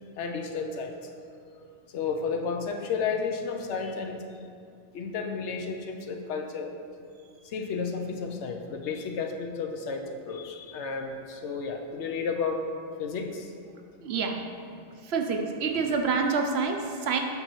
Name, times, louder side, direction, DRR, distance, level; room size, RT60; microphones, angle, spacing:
voice 1, 0.2-1.7 1.9-4.2 4.9-6.8 7.4-12.6 13.0-13.5, left 5 dB, 75° left, 4 dB, 0.9 m, -32 dB
voice 2, 14.0-14.4 15.0-17.2, right 5 dB, 70° right, 4 dB, 0.8 m, -27 dB
7.9 x 5.4 x 3.0 m, 2.3 s
omnidirectional pair, 1.2 m